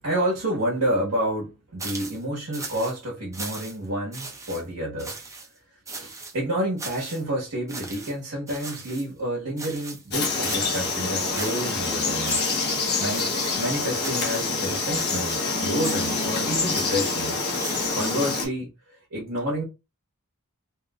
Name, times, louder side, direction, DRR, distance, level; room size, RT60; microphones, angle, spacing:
voice 1, 0.0-5.1 5.9-12.4 13.0-17.4 17.9-19.6, right 1 dB, 85° right, 1.4 m, -29 dB
sound 1, 1.8-2.2 2.5-3.0 3.3-3.9 4.1-4.6 5.0-5.5 5.9-6.3 6.8-7.2 7.7-8.1 8.5-9.1 9.6-10.1 10.4-11.0 11.3-11.9 12.2-12.8 13.1-13.6 14.0-14.5 14.9-15.5 15.8-16.3 16.7-18.1, right 3 dB, 15° right, 0.7 m, -38 dB
Frog, 10.1-18.5, left 3 dB, 50° left, 1.0 m, -26 dB
3.3 x 3.1 x 2.4 m
head